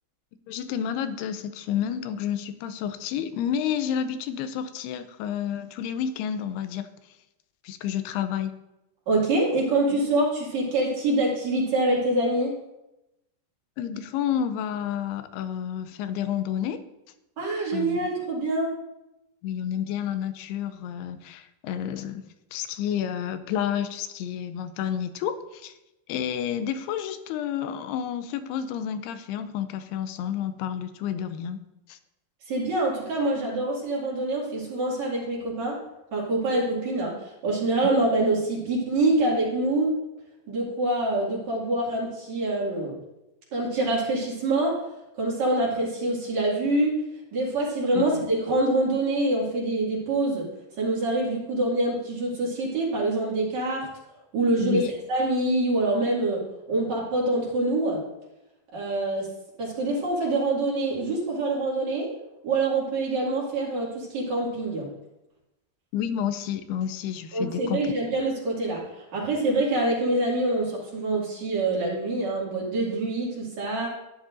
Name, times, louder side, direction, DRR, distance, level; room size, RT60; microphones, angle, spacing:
voice 1, 0.5-6.9 7.6-8.5 13.8-16.8 17.7-18.0 19.4-22.2 22.5-25.8 26.1-31.6 31.9-32.0 48.0-48.3 54.6-54.9 65.9-67.9, left 9 dB, 85° left, 10 dB, 2.6 m, -30 dB
voice 2, 9.1-12.6 17.4-18.7 32.5-35.8 36.1-40.0 40.5-42.9 43.5-44.9 45.1-47.0 47.3-50.5 50.8-53.9 54.3-56.4 56.7-58.0 58.7-59.3 59.6-62.1 62.4-64.9 67.3-73.9, right 2 dB, 50° right, -4 dB, 3.3 m, -25 dB
14.0 x 10.0 x 2.6 m, 0.92 s
omnidirectional pair, 4.6 m